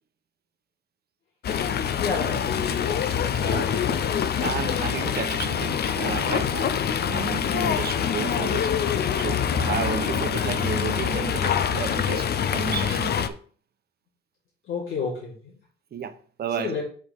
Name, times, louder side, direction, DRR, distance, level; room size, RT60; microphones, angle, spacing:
Fowl, 1.4-13.3, left 8 dB, 55° left, 0.7 m, -25 dB
voice 1, 2.0-2.7 14.7-15.6 16.6-16.8, left 5 dB, 80° left, 4.1 m, -30 dB
voice 2, 3.4-3.8 4.4-6.7 7.0-8.7 9.1-13.4 15.9-16.8, right 7 dB, 55° right, 1.0 m, -32 dB
6.7 x 6.2 x 3.7 m
cardioid pair, 90°, 20 cm